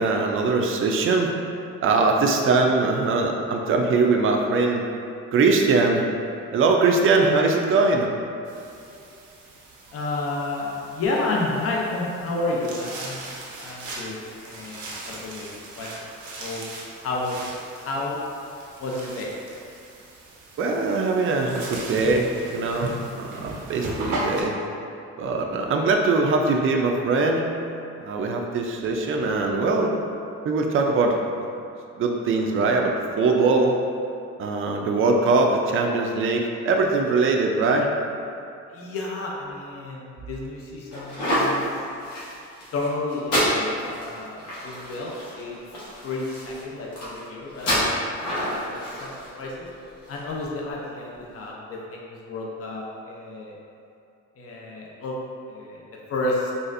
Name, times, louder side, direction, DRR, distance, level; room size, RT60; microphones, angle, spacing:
voice 1, 0.0-1.3 1.8-4.8 5.3-6.1 6.5-8.1 20.6-24.5 25.2-27.4 28.0-29.9 30.4-31.2 32.0-33.8 34.4-37.9, right 3 dB, 45° right, 2 dB, 0.4 m, -21 dB
sound 1, 8.4-24.4, right 2 dB, 85° right, 0.7 m, -38 dB
voice 2, 9.9-13.3 13.6-14.1 14.4-15.5 15.8-15.9 16.4-16.7 17.0-17.4 17.8-18.2 18.8-19.3 38.7-41.6 42.7-45.6 46.0-47.8 48.1-49.7 50.1-53.5 54.4-55.2 55.5-55.8 56.1-56.5, left 2 dB, 50° left, -3 dB, 0.6 m, -31 dB
sound 2, 40.9-50.5, equal, 75° left, 1.2 m, -29 dB
4.1 x 2.5 x 2.5 m, 2.6 s
cardioid pair, 90°, 30 cm